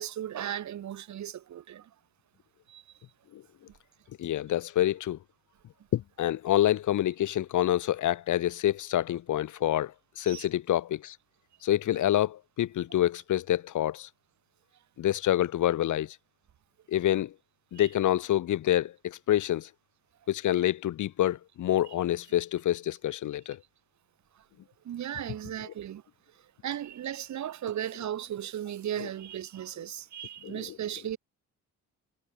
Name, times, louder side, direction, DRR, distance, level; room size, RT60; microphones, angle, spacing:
voice 1, 0.0-1.9 2.7-2.9 10.2-10.5 17.7-17.9 21.9-22.0 24.4-24.5 24.8-26.0 26.6-31.2, right 11 dB, 65° right, 4.3 m, -36 dB
voice 2, 4.2-5.2 5.9-11.2 11.6-14.1 15.0-16.2 16.9-17.3 17.7-19.7 20.3-23.6 30.4-30.7, left 12 dB, 75° left, 6.0 m, -27 dB
cardioid pair, 90°, 30 cm